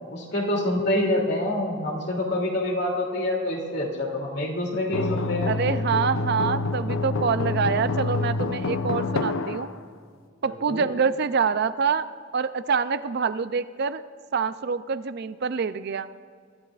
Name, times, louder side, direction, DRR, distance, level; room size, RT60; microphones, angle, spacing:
voice 1, 0.1-5.6 10.5-10.9, left 1 dB, 55° left, -1 dB, 2.7 m, -26 dB
sound 1, 4.9-9.7, left 3 dB, 85° left, 0.7 m, -27 dB
voice 2, 5.5-9.7 10.4-12.1 12.3-14.0 14.3-16.1, right 5 dB, 55° right, 13 dB, 0.4 m, -26 dB
23.5 x 12.5 x 2.4 m, 2.1 s
head